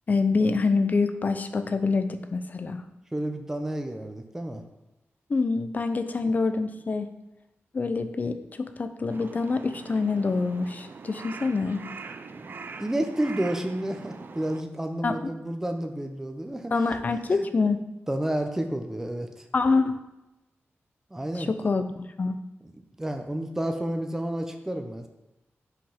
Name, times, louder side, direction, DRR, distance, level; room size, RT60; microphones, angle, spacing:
voice 1, 0.1-2.8 5.3-7.1 7.7-11.8 15.0-15.3 16.7-17.8 19.5-20.0 21.4-22.4, left 4 dB, 40° left, 9 dB, 0.5 m, -26 dB
voice 2, 3.1-4.6 12.3-12.5 12.8-16.7 17.3-17.5 18.1-19.4 21.1-21.5 22.6-22.7 23.0-25.1, right 1 dB, 10° right, 5 dB, 0.7 m, -30 dB
Crow, 9.1-14.6, right 4 dB, 50° right, 0.4 m, -43 dB
5.7 x 5.1 x 5.7 m, 0.96 s
wide cardioid pair, 150°, 4 cm